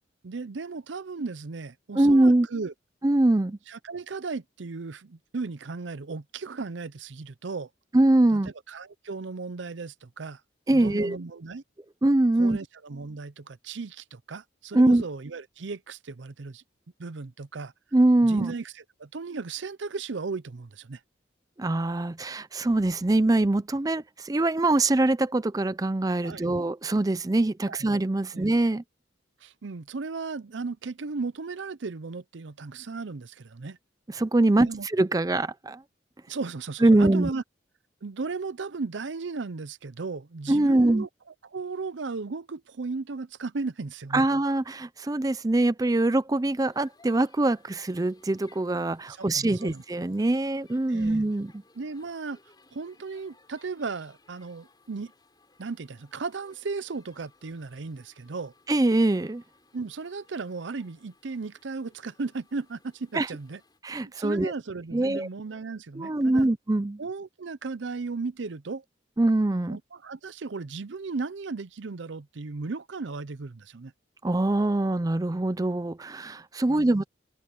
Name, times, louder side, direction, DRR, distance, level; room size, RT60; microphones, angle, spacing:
voice 1, 0.2-2.7 3.7-7.7 8.3-8.4 8.7-10.4 10.7-11.6 12.4-16.6 17.0-17.7 18.2-21.0 26.2-26.6 27.7-27.9 28.3-28.5 29.4-33.8 34.5-34.9 36.3-37.4 38.0-41.1 41.4-44.2 49.1-49.8 50.9-51.3 51.8-52.4 52.7-55.1 55.6-58.5 59.7-63.6 64.0-66.5 67.0-68.8 69.7-73.9 76.7-77.0, right 4 dB, 70° right, 0.6 m, -36 dB
voice 2, 2.0-2.5 3.0-3.6 7.9-8.5 10.7-11.2 12.0-12.6 14.7-15.0 17.9-18.5 21.6-28.8 34.1-35.8 36.8-37.3 40.5-41.1 44.1-51.6 58.7-59.4 63.1-63.3 63.8-64.5 64.9-65.3 66.0-67.0 69.2-69.8 74.2-77.0, right 2 dB, 20° right, 0.4 m, -23 dB
sound 1, 46.6-63.8, left 3 dB, 20° left, 4.8 m, -61 dB
open air
head